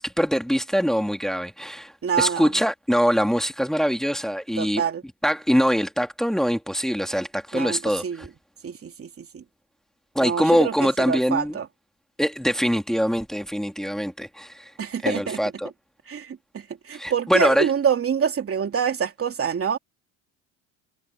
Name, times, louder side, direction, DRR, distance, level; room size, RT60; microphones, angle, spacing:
voice 1, 0.0-1.9 2.2-4.8 5.2-8.3 10.1-11.6 12.2-14.7 15.0-15.7 16.9-17.7, equal, ahead, 2.8 m, -23 dB
voice 2, 2.0-2.5 4.6-5.0 7.5-8.3 8.6-9.4 10.2-11.7 14.8-15.4 16.1-19.8, right 7 dB, 35° right, 3.0 m, -26 dB
supercardioid pair, 95°, 37 cm